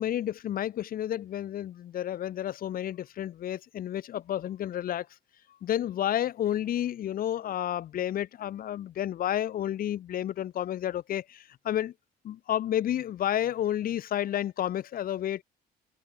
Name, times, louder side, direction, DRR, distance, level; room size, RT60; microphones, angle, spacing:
voice 1, 0.0-5.1 5.6-11.9 12.2-15.4, left 11 dB, 60° left, 2.5 m, -31 dB
cardioid pair, 110°, 17 cm